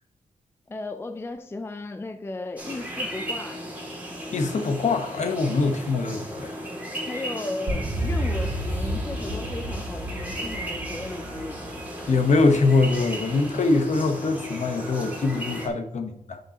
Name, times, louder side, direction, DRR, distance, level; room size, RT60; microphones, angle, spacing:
voice 1, 0.7-3.6 7.1-11.6, left 2 dB, 15° left, 0.4 m, -35 dB
sound 1, 2.6-15.7, equal, 10° right, 2.5 m, -35 dB
voice 2, 4.3-6.5 12.1-16.4, left 3 dB, 55° left, 1.1 m, -23 dB
sound 2, 7.7-13.0, equal, 75° right, 1.9 m, -31 dB
10.5 x 6.6 x 2.9 m
wide cardioid pair, 145°, 14 cm